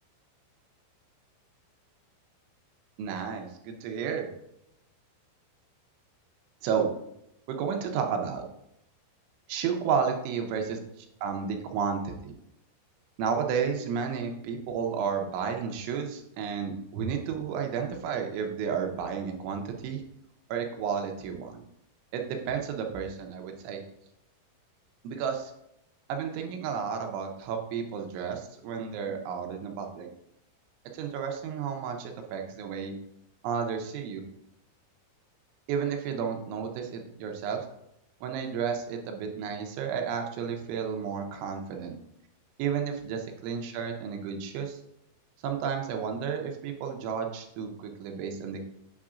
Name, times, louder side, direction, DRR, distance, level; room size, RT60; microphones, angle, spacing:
voice 1, 3.0-4.3 6.6-6.9 7.5-8.4 9.5-12.3 13.2-20.0 20.5-21.6 22.1-23.8 25.0-25.5 26.1-30.1 30.9-33.0 33.4-34.2 35.7-37.7 38.2-42.0 42.6-44.8 45.4-48.6, right 6 dB, 80° right, 4 dB, 3.0 m, -32 dB
8.6 x 6.3 x 2.5 m, 0.80 s
omnidirectional pair, 5.6 m